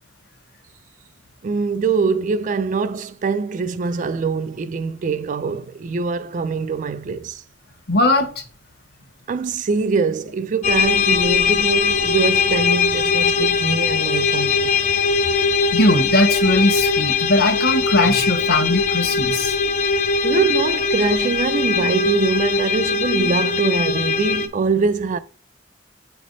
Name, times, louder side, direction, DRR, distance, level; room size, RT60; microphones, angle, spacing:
voice 1, 1.4-7.4 9.3-14.7 19.6-25.2, right 4 dB, 40° right, 0.3 m, -23 dB
voice 2, 7.9-8.3 15.7-19.5, left 1 dB, 55° left, 1.0 m, -19 dB
sound 1, 10.6-24.5, left 4 dB, 40° left, 0.6 m, -20 dB
8.2 x 3.4 x 3.9 m
head